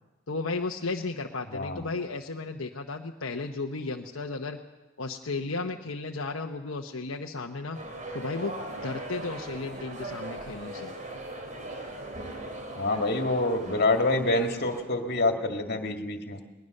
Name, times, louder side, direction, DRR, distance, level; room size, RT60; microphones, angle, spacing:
voice 1, 0.3-4.6 5.0-7.8 8.1-10.9, left 3 dB, 75° left, 1 dB, 1.1 m, -34 dB
voice 2, 1.5-1.9 12.8-16.4, left 2 dB, 50° left, 5 dB, 2.1 m, -27 dB
sound 1, 7.7-14.8, right 1 dB, 35° right, 3.2 m, -39 dB
21.0 x 20.0 x 6.6 m, 1.1 s
head